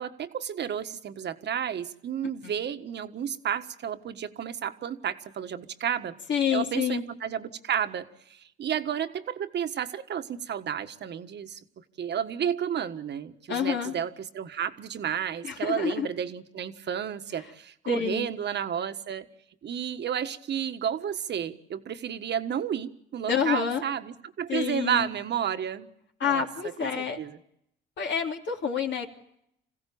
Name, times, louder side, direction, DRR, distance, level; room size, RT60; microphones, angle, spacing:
voice 1, 0.0-6.1 6.5-11.6 12.0-19.3 19.6-25.9 26.2-26.4 26.8-27.4, right 9 dB, 60° right, 9 dB, 1.5 m, -32 dB
voice 2, 6.3-7.0 13.5-13.9 15.4-16.1 17.9-18.3 23.3-23.8 24.5-25.1 26.2-27.2 28.0-29.1, left 7 dB, 65° left, 2 dB, 3.0 m, -28 dB
26.5 x 16.0 x 8.6 m, 0.77 s
cardioid pair, 90°, 20 cm